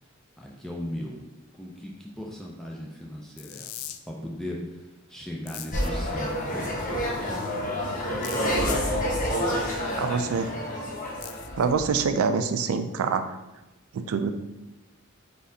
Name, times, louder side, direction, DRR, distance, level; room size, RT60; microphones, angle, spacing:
voice 1, 0.4-1.2 1.6-4.6 5.1-6.8, left 1 dB, ahead, -2 dB, 0.3 m, -37 dB
sound 1, 3.4-4.0 5.5-5.9 8.2-8.8 11.2-11.5, left 11 dB, 80° left, 0.3 m, -39 dB
sound 2, 5.7-11.9, equal, 40° left, 0.9 m, -28 dB
voice 2, 10.0-10.5 11.6-13.2 13.9-14.3, right 5 dB, 85° right, 9 dB, 0.4 m, -25 dB
4.0 x 3.6 x 2.7 m, 1.0 s
head